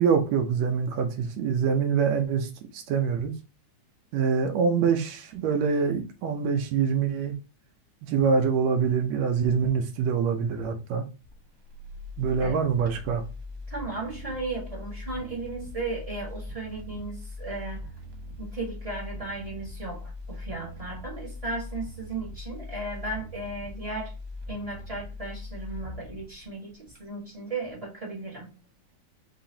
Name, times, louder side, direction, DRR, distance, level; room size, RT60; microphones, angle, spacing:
voice 1, 0.0-3.3 4.1-7.3 8.1-11.0 12.2-13.3, right 6 dB, 75° right, 1.9 m, -25 dB
sound 1, 11.2-27.3 27.7-27.8, left 2 dB, 90° right, 2.6 m, -41 dB
voice 2, 13.7-17.8 18.4-24.1 24.5-28.5, right 2 dB, 20° right, 1.0 m, -35 dB
5.6 x 3.0 x 2.8 m
omnidirectional pair, 3.5 m